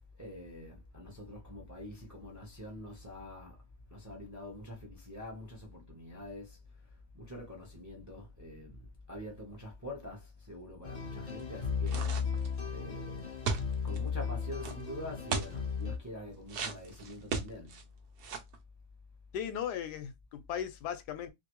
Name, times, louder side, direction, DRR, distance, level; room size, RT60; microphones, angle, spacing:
voice 1, 0.2-3.6 3.9-6.6 7.1-12.0 12.7-17.8, left 1 dB, 20° right, 0.5 m, -45 dB
sound 1, 10.8-16.0, left 6 dB, 40° left, 0.6 m, -35 dB
sound 2, 11.9-12.6 13.4-14.0 14.6-14.7 15.3-15.6 16.5-17.8 18.2-18.6, right 4 dB, 65° right, 0.5 m, -35 dB
voice 2, 19.3-21.3, left 9 dB, 85° left, 1.2 m, -37 dB
3.2 x 2.5 x 3.0 m
omnidirectional pair, 1.7 m